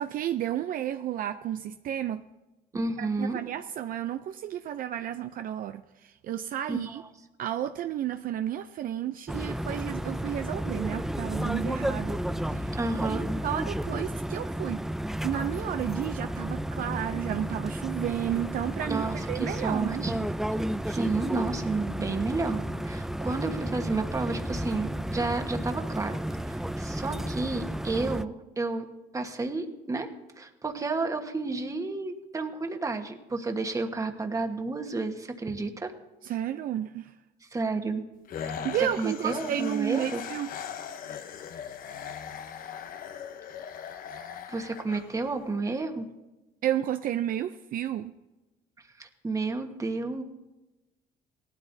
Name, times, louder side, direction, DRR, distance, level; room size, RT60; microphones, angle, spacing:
voice 1, 0.0-2.2 3.0-7.0 7.4-12.2 12.5-13.2 13.4-14.8 15.2-20.0 36.2-37.1 38.6-40.5 46.6-48.1, right 11 dB, 55° right, 8 dB, 0.5 m, -32 dB
voice 2, 2.7-3.4 6.7-7.1 12.7-13.3 18.8-20.3 20.9-26.2 26.4-28.9 29.1-30.1 30.4-35.9 37.5-38.0 38.8-40.2 44.5-46.1 49.0-50.2, right 3 dB, 20° right, 5 dB, 1.3 m, -31 dB
sound 1, 9.3-28.2, right 1 dB, ahead, 0.3 m, -32 dB
sound 2, 38.3-45.5, left 8 dB, 55° left, 0.8 m, -39 dB
18.0 x 12.5 x 2.7 m, 1.1 s
cardioid pair, 110°, 17 cm